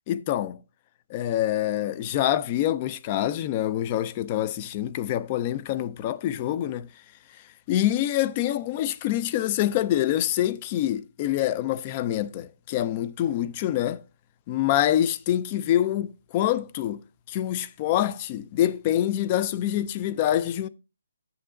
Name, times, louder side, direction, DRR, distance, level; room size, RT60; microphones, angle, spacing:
voice 1, 0.1-0.6 1.1-6.9 7.7-14.0 14.5-17.0 17.3-20.7, left 12 dB, 15° left, 0.3 m, -26 dB
9.6 x 6.0 x 3.8 m
hypercardioid pair, 175°, 0 cm